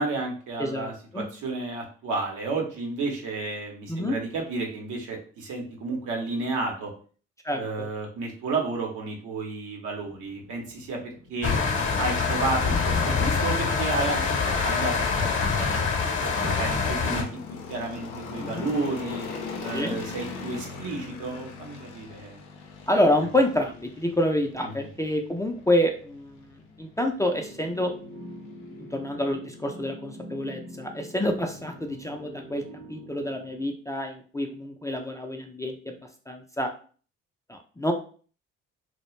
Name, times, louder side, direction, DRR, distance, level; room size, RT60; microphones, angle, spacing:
voice 1, 0.0-6.9 7.5-11.6 12.0-14.4 14.6-17.3 17.7-19.2 19.6-22.4 23.3-23.4 24.6-24.9, right 3 dB, 70° right, 1 dB, 0.8 m, -32 dB
voice 2, 0.6-1.3 3.9-4.2 7.4-7.9 18.4-18.7 19.7-20.0 22.9-26.4 26.8-27.9 28.9-32.6 32.9-35.9 36.3-36.7 37.5-37.9, left 1 dB, 10° left, 3 dB, 0.4 m, -27 dB
sound 1, 10.0-29.4, left 4 dB, 85° left, 0.5 m, -42 dB
sound 2, 11.4-17.2, left 5 dB, 40° left, 0.8 m, -25 dB
sound 3, 27.3-33.7, equal, 40° right, 0.8 m, -44 dB
2.3 x 2.1 x 3.0 m, 0.41 s
hypercardioid pair, 50°, 32 cm